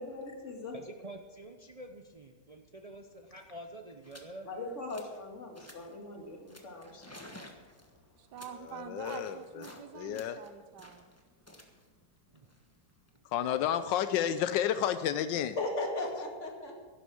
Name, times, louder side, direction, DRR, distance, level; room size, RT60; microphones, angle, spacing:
voice 1, 0.0-0.8 4.5-7.2 15.6-16.7, left 2 dB, 40° left, 1 dB, 2.4 m, -38 dB
voice 2, 0.7-4.5 12.3-12.5, right 1 dB, 35° right, 4 dB, 0.5 m, -47 dB
sound 1, 3.0-3.1 3.3-3.5 4.0-4.3 4.7-5.2 5.5-6.0 6.5-9.8 10.1-13.2, left 1 dB, 10° left, 1.1 m, -53 dB
voice 3, 8.2-11.0, right 8 dB, 70° right, 9 dB, 1.5 m, -46 dB
voice 4, 8.7-9.6 9.9-10.4 13.3-15.6, left 10 dB, 90° left, 11 dB, 1.3 m, -31 dB
11.5 x 11.0 x 6.3 m, 1.4 s
omnidirectional pair, 1.9 m